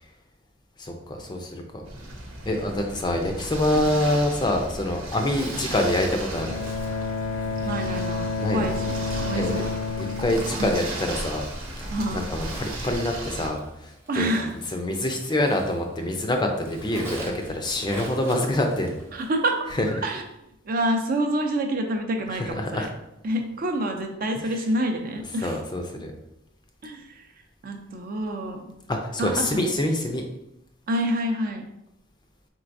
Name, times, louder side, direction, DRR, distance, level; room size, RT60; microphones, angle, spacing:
voice 1, 0.8-1.8 2.4-6.6 8.4-8.7 9.3-9.6 10.0-11.5 11.8-14.3 14.7-18.9 22.3-22.9 25.4-26.1 28.9-30.2, left 1 dB, 20° left, 3 dB, 0.5 m, -26 dB
sound 1, 1.9-13.5, right 1 dB, 90° right, 1.0 m, -35 dB
Zipper (clothing), 5.3-16.2 16.5-19.4, right 1 dB, 15° right, 0.7 m, -44 dB
Bowed string instrument, 6.3-11.4, left 4 dB, 75° left, 0.5 m, -30 dB
voice 2, 7.7-9.7 10.5-10.7 11.9-12.3 14.1-14.6 19.1-19.6 19.9-20.2 20.6-22.9 23.2-25.6 26.8-27.3 27.6-28.8 29.2-29.6 30.9-31.6, right 1 dB, 45° right, 4 dB, 0.5 m, -28 dB
4.5 x 4.0 x 2.6 m, 0.84 s
head